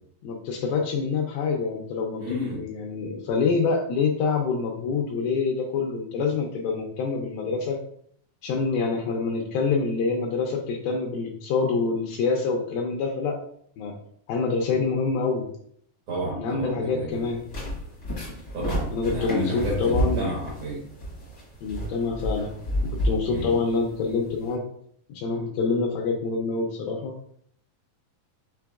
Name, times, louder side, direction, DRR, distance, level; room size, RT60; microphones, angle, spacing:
voice 1, 0.2-7.8 8.4-13.4 13.8-14.0 14.3-15.5 16.3-17.4 18.9-20.3 21.6-22.5 22.8-24.6 25.1-27.1, left 4 dB, 80° left, 0 dB, 2.3 m, -26 dB
voice 2, 2.2-2.6 16.1-17.3 18.5-20.8 23.3-23.5, right 1 dB, 75° right, -5 dB, 1.4 m, -31 dB
sound 1, 17.1-24.5, equal, 60° left, 0.9 m, -31 dB
5.9 x 3.3 x 2.3 m, 0.65 s
omnidirectional pair, 4.3 m